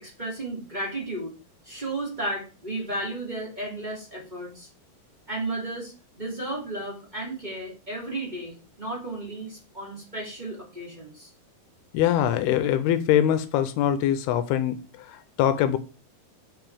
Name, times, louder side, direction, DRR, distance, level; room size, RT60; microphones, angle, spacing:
voice 1, 0.0-1.3 1.6-4.7 5.3-11.3, right 2 dB, 15° right, -4 dB, 1.8 m, -34 dB
voice 2, 11.9-15.8, left 10 dB, 85° left, 11 dB, 2.5 m, -23 dB
7.6 x 6.2 x 3.4 m, 0.33 s
omnidirectional pair, 4.6 m